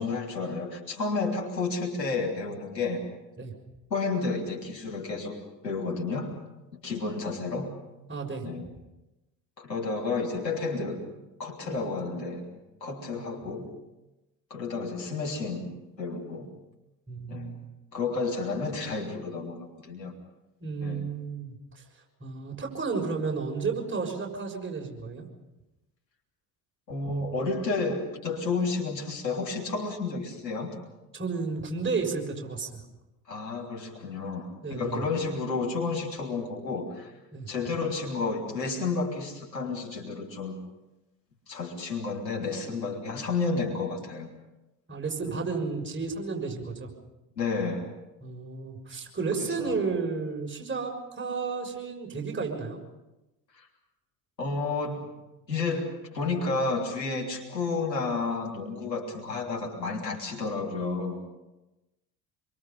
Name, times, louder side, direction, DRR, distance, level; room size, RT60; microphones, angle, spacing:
voice 1, 0.0-3.0 3.9-6.3 6.7-7.7 8.4-8.7 9.6-11.0 11.4-12.4 12.8-13.7 14.5-15.7 16.0-16.5 17.3-17.6 17.9-20.1 20.8-21.1 26.9-30.7 33.3-37.1 37.5-40.6 41.5-44.3 45.2-45.3 47.4-47.9 49.4-49.8 53.5-53.7 54.4-55.1 55.5-61.2, left 3 dB, 85° left, -1 dB, 3.4 m, -31 dB
voice 2, 8.1-8.5 11.6-12.0 13.1-13.2 17.1-17.6 20.6-21.5 22.2-25.3 31.1-32.8 34.6-35.0 37.3-37.5 44.9-46.9 48.2-52.8, right 4 dB, 25° right, 1 dB, 6.6 m, -32 dB
27.0 x 23.5 x 5.5 m, 0.99 s
figure-of-eight pair, 60°, 49 cm